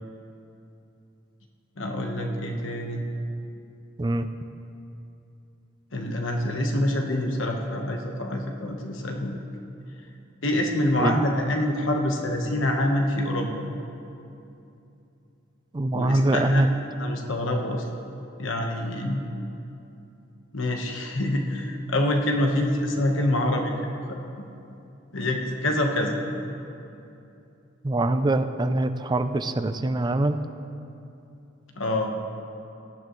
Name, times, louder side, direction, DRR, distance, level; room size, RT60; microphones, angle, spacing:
voice 1, 1.8-3.0 5.9-9.4 10.4-13.5 15.9-16.6 17.0-17.8 18.4-19.2 20.5-23.7 24.1-24.5 25.1-26.1 31.7-32.1, left 1 dB, 80° left, 2 dB, 1.2 m, -26 dB
voice 2, 15.7-16.7 27.8-30.4, right 2 dB, 20° right, 9 dB, 0.4 m, -23 dB
18.0 x 12.0 x 3.1 m, 2.7 s
head